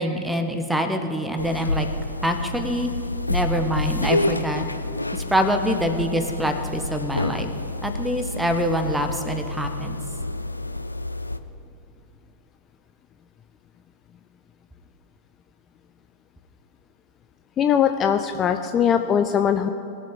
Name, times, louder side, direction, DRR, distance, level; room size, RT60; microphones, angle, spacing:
voice 1, 0.0-1.9 2.2-2.9 3.3-4.6 5.1-7.5 7.8-10.0, equal, 5° right, 7 dB, 1.1 m, -25 dB
sound 1, 1.4-11.4, left 2 dB, 85° left, 0.4 m, -28 dB
voice 2, 17.6-19.7, left 8 dB, 30° left, 7 dB, 0.5 m, -21 dB
20.5 x 7.2 x 3.8 m, 2.8 s
figure-of-eight pair, 90°, 0 cm